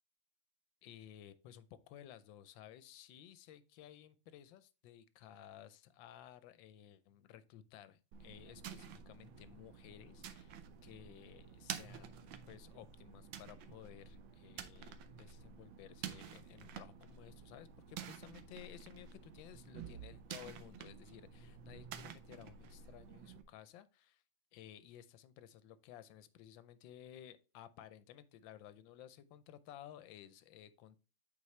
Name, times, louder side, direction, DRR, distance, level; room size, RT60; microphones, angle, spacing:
voice 1, 0.8-24.2 24.5-31.0, left 11 dB, 75° left, 1.3 m, -56 dB
sound 1, 8.1-23.4, right 8 dB, 75° right, 1.4 m, -50 dB
8.4 x 4.5 x 3.1 m
omnidirectional pair, 2.3 m